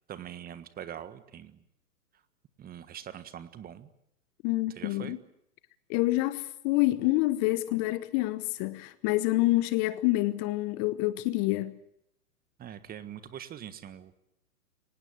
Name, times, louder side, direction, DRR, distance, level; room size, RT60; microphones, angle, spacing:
voice 1, 0.1-1.6 2.6-3.9 4.7-5.2 12.6-14.2, right 10 dB, 20° right, 1.5 m, -43 dB
voice 2, 4.4-5.2 5.9-11.7, left 18 dB, 30° left, 1.0 m, -27 dB
24.5 x 19.5 x 9.1 m
hypercardioid pair, 120°, 47 cm